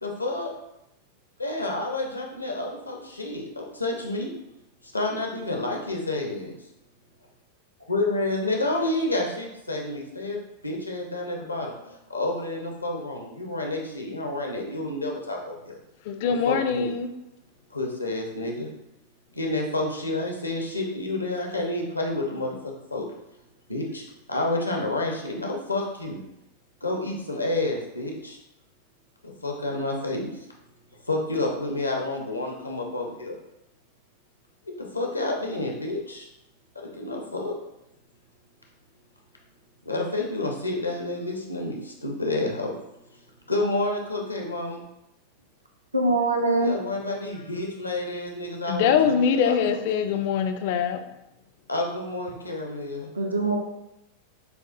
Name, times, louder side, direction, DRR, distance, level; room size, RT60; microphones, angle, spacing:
voice 1, 0.0-0.5 1.4-4.3 4.8-6.6 7.9-15.8 16.2-16.9 17.7-18.7 19.3-23.1 23.7-24.0 24.3-26.2 26.8-28.4 29.4-30.3 31.1-33.4 34.8-36.3 36.8-37.5 39.8-42.7 43.5-44.8 46.6-49.9 51.7-53.1, left 2 dB, 80° left, 1 dB, 0.7 m, -29 dB
voice 2, 16.1-17.1 48.7-51.0, left 7 dB, 50° left, 8 dB, 0.4 m, -23 dB
voice 3, 45.9-46.7 52.4-52.5 53.1-53.6, right 2 dB, 80° right, 1 dB, 0.6 m, -23 dB
6.7 x 2.3 x 2.6 m, 0.88 s
figure-of-eight pair, 90°, 0 cm